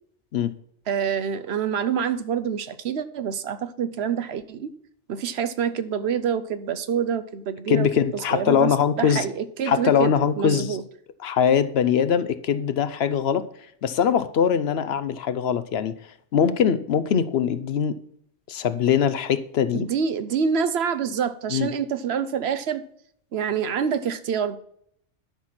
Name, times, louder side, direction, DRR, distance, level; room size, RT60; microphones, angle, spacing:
voice 1, 0.9-4.7 5.1-7.9 8.1-8.7 9.0-10.8 19.7-22.8 23.3-24.6, right 7 dB, 65° right, 0.9 m, -26 dB
voice 2, 7.7-9.2 9.7-10.8 11.2-13.5 13.8-16.0 16.3-18.0 18.5-19.9 21.5-21.7, left 8 dB, 65° left, 0.8 m, -22 dB
10.5 x 5.9 x 5.8 m
omnidirectional pair, 1.2 m